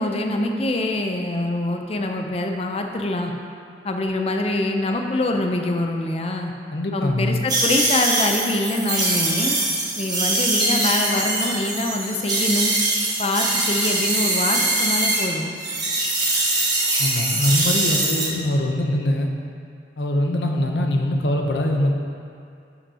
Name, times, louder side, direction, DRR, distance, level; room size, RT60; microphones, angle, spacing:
voice 1, 0.0-3.3 3.8-6.5 6.9-9.6 10.0-12.7 13.2-15.5, left 2 dB, 35° left, 3 dB, 0.5 m, -24 dB
voice 2, 6.7-7.4 17.0-19.3 20.0-21.9, left 1 dB, 75° left, 2 dB, 0.7 m, -22 dB
sound 1, 7.5-15.3 15.6-18.2, right 2 dB, 20° right, 1.3 m, -22 dB
11.0 x 5.7 x 2.8 m, 2.4 s
head